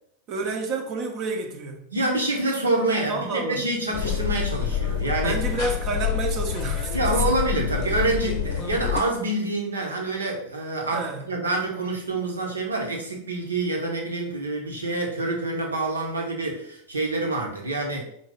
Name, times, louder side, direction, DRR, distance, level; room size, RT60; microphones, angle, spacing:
voice 1, 0.3-1.9 3.1-3.6 5.2-7.1 10.9-11.3, right 3 dB, 40° right, 0.8 m, -30 dB
voice 2, 1.9-5.4 6.9-18.0, right 2 dB, 75° right, 1.0 m, -27 dB
sound 1, 3.9-9.0, left 9 dB, 45° left, 0.7 m, -27 dB
3.9 x 3.1 x 3.8 m
figure-of-eight pair, 90°, 0 cm